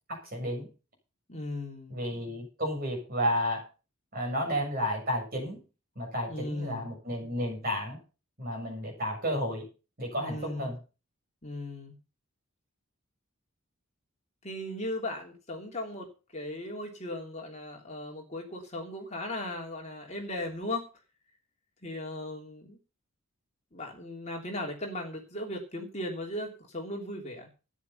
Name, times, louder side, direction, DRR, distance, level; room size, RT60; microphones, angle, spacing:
voice 1, 0.1-0.7 1.9-3.7 4.1-5.6 5.9-8.0 8.4-9.7 10.0-10.8, equal, 40° right, 1 dB, 6.8 m, -32 dB
voice 2, 1.3-2.0 6.3-6.9 10.2-10.7 11.4-11.9 14.4-20.9 21.8-22.8 23.7-27.5, left 1 dB, 30° left, 1 dB, 3.1 m, -37 dB
13.5 x 9.7 x 5.7 m, 0.32 s
head